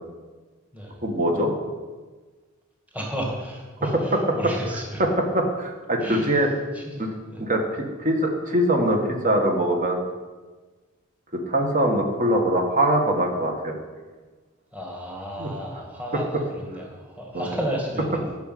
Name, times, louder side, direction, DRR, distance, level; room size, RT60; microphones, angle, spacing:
voice 1, 1.0-1.5 3.9-4.2 4.7-5.1 5.3-6.5 7.0-7.1 7.4-10.0 11.3-13.8 15.4-15.5 17.3-17.6, right 1 dB, 35° right, 2 dB, 1.8 m, -23 dB
voice 2, 2.9-5.0 6.0-6.4 6.7-7.0 7.3-7.4 14.7-18.1, equal, 5° right, -2 dB, 2.0 m, -33 dB
11.5 x 6.4 x 9.4 m, 1.3 s
head